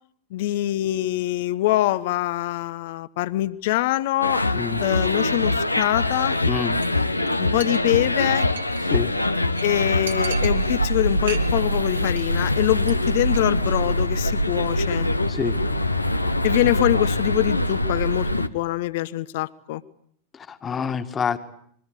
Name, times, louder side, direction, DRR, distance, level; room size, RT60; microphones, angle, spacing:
voice 1, 0.3-4.4 4.8-6.4 7.4-8.5 9.6-15.1 16.4-19.8, left 16 dB, 50° left, 17 dB, 1.1 m, -24 dB
sound 1, 4.2-18.5, left 1 dB, 85° left, 1.0 m, -23 dB
voice 2, 6.5-6.8 8.9-9.1 15.3-15.6 20.3-21.4, left 6 dB, 20° left, 9 dB, 2.0 m, -27 dB
Chink clink, 6.8-7.0 7.3-7.4 7.6-8.9 9.2-9.3 9.6-9.7 10.1-10.9 11.2-11.8 12.0-12.3 12.6-12.9 13.2-13.4, right 6 dB, 70° right, 2.6 m, -36 dB
27.0 x 23.0 x 8.3 m, 0.65 s
figure-of-eight pair, 90°, 0 cm